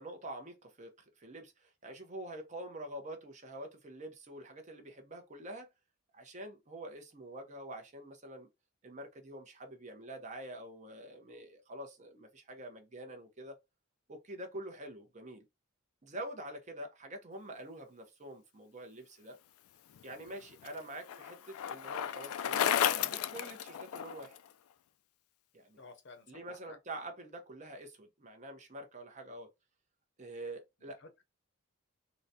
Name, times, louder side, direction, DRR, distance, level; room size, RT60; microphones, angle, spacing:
voice 1, 0.0-5.7 6.1-8.5 8.8-13.6 14.1-15.4 16.0-19.4 20.0-24.4 25.5-25.8 26.3-29.5 30.2-31.0, right 1 dB, 35° right, 0.7 m, -46 dB
Bicycle, 20.0-24.4, left 9 dB, 85° left, 0.3 m, -33 dB
voice 2, 25.8-26.8 30.8-31.2, left 3 dB, 55° left, 0.7 m, -55 dB
3.8 x 2.2 x 2.6 m
head